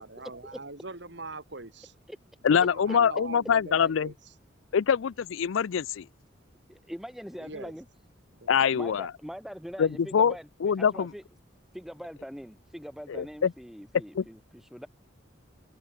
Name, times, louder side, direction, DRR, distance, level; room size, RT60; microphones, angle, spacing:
voice 1, 0.0-1.9 2.4-4.1 7.4-7.7 8.3-8.8, right 3 dB, 60° right, 2.2 m, -42 dB
voice 2, 2.4-4.1 4.7-6.1 8.5-9.1 9.8-10.3 10.6-11.1 13.1-13.5 14.1-14.2, left 7 dB, 75° left, 0.4 m, -24 dB
voice 3, 6.7-7.9 8.7-11.2 11.7-14.9, equal, ahead, 2.3 m, -42 dB
head